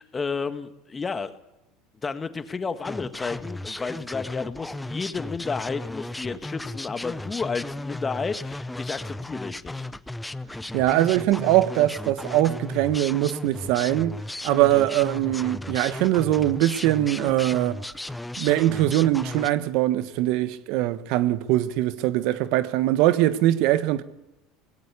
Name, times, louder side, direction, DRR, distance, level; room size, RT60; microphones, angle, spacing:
voice 1, 0.0-1.4 2.0-9.9, left 5 dB, 25° left, 1.7 m, -31 dB
sound 1, 2.8-19.5, left 1 dB, 5° left, 0.7 m, -35 dB
voice 2, 10.7-14.2 14.4-17.8 18.4-24.0, right 14 dB, 70° right, 1.2 m, -22 dB
18.0 x 17.0 x 8.3 m
supercardioid pair, 100°, 0 cm